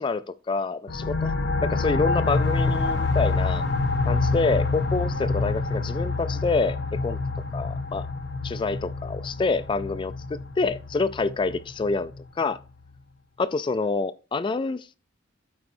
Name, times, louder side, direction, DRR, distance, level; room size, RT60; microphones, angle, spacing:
voice 1, 0.0-1.3 1.6-3.6 4.1-7.2 7.5-8.1 8.4-12.1 12.4-12.6 13.4-14.9, left 3 dB, 25° left, 0.3 m, -27 dB
sound 1, 0.9-12.2, left 3 dB, 60° left, 0.7 m, -27 dB
12.0 x 4.7 x 2.6 m
head